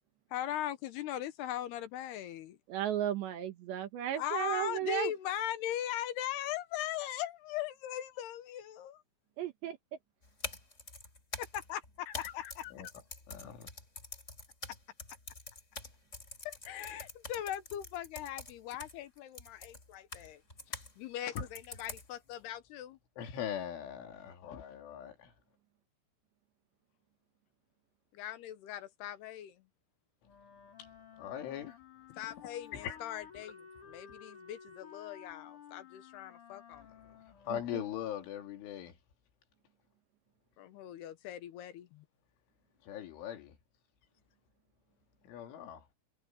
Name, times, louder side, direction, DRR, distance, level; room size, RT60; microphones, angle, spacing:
voice 1, 0.3-2.6 4.1-9.0 11.4-12.7 16.4-20.4 20.7-23.0 28.1-29.6 32.2-36.9 40.6-42.1, left 12 dB, 70° left, 2.8 m, -40 dB
voice 2, 2.7-5.1 9.4-9.8 37.5-37.8, right 12 dB, 70° right, 3.8 m, -35 dB
sound 1, 10.2-20.9 21.4-22.3, left 2 dB, 15° left, 3.2 m, -46 dB
voice 3, 13.3-13.7 23.2-25.3 31.2-31.8 32.7-33.0 37.0-39.0 42.8-43.6 45.3-45.9, left 10 dB, 90° left, 5.3 m, -41 dB
Wind instrument woodwind instrument, 30.2-38.5, left 7 dB, 45° left, 6.0 m, -54 dB
omnidirectional pair, 5.4 m